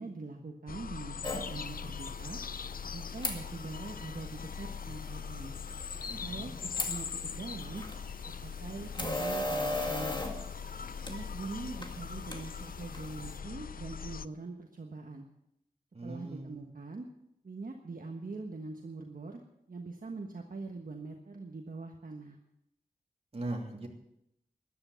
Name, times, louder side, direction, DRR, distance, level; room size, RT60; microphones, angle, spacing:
voice 1, 0.0-2.4 2.8-5.5 6.2-7.8 8.2-10.2 11.0-15.3 16.0-17.1 17.4-19.4 19.7-22.4, right 3 dB, 60° right, 2 dB, 1.4 m, -43 dB
sound 1, 0.7-14.3, left 6 dB, 60° left, 0.4 m, -41 dB
sound 2, 1.2-13.4, left 1 dB, 25° left, 2.0 m, -40 dB
voice 2, 6.1-6.5 15.9-16.7 23.3-23.9, right 2 dB, 40° right, 0 dB, 2.9 m, -40 dB
13.0 x 11.0 x 7.1 m, 0.81 s
wide cardioid pair, 90°, 16 cm